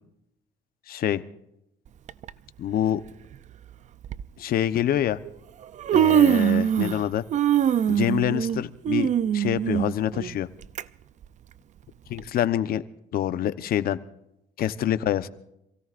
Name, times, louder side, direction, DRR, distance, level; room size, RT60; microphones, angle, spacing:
voice 1, 0.9-1.2 2.6-3.0 4.4-5.2 5.9-7.2 7.9-10.5 12.1-12.8 13.1-14.0 14.6-15.3, left 11 dB, 60° left, 13 dB, 1.0 m, -26 dB
Human voice, 2.1-2.3 3.3-3.4 4.0-4.2 5.2-5.3 5.6-7.0 7.3-10.8 11.2-11.3 12.2-12.3, right 10 dB, 45° right, 0.5 m, -22 dB
27.0 x 17.0 x 2.6 m, 0.84 s
cardioid pair, 110°, 17 cm